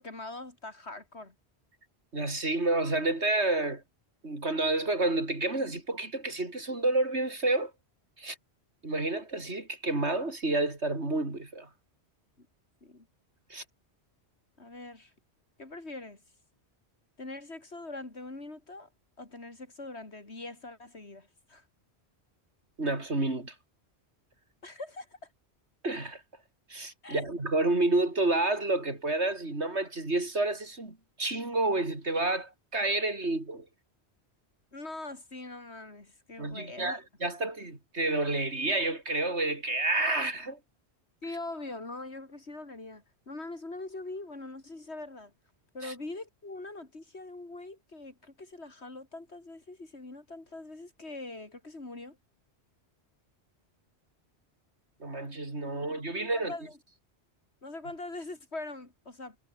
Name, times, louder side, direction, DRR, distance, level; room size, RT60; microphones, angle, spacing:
voice 1, 0.0-1.4 12.4-12.5 12.8-13.1 14.6-15.1 15.6-16.2 17.2-18.9 19.2-21.7 24.6-25.3 27.0-27.3 34.7-37.0 41.2-45.3 45.7-52.2 55.7-55.9 56.3-56.8 57.6-59.4, left 2 dB, 75° left, 4.3 m, -42 dB
voice 2, 2.1-3.8 4.2-7.7 8.2-8.4 8.8-11.7 13.5-13.6 22.8-23.5 25.8-26.2 26.7-33.7 36.4-40.6 45.8-45.9 55.0-56.5, right 2 dB, 80° right, 4.8 m, -29 dB
omnidirectional pair, 1.1 m